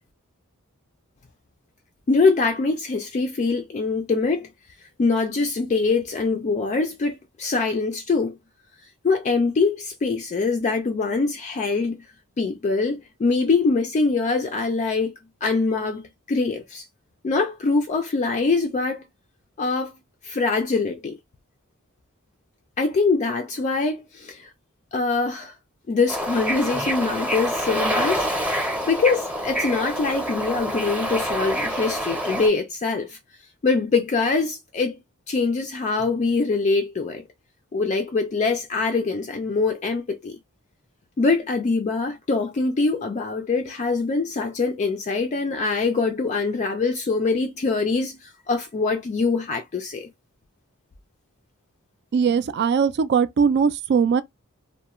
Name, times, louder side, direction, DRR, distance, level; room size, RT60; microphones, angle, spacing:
voice 1, 2.1-4.5 5.0-8.4 9.0-12.0 12.4-15.1 15.4-16.9 17.2-19.0 19.6-19.9 20.2-21.2 22.8-24.5 24.9-25.5 25.9-33.2 33.6-35.0 35.3-37.2 37.7-40.4 41.2-50.1, left 4 dB, 35° left, 0.3 m, -23 dB
Bird / Ocean, 26.1-32.5, equal, 5° right, 0.7 m, -26 dB
voice 2, 52.1-54.2, right 6 dB, 50° right, 0.3 m, -20 dB
2.3 x 2.1 x 2.9 m
head